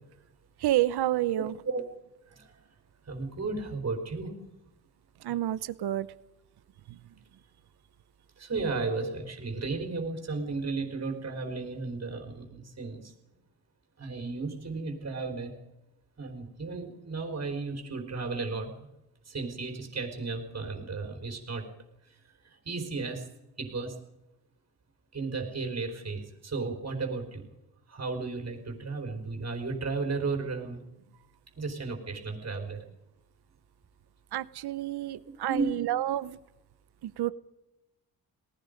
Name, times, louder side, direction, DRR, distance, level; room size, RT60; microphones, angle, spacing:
voice 1, 0.6-1.6 5.2-6.1 6.9-7.0 34.3-36.4 37.0-37.3, right 13 dB, 85° right, 17 dB, 1.0 m, -29 dB
voice 2, 1.3-1.8 2.3-2.5 3.1-4.3 8.4-13.1 14.0-15.5 16.2-18.7 19.3-21.6 22.6-23.3 23.6-23.9 25.1-27.5 27.9-30.8 31.6-32.8 35.5-35.7, right 3 dB, 40° right, 3 dB, 4.4 m, -34 dB
28.0 x 19.0 x 5.3 m, 0.94 s
cardioid pair, 95°, 38 cm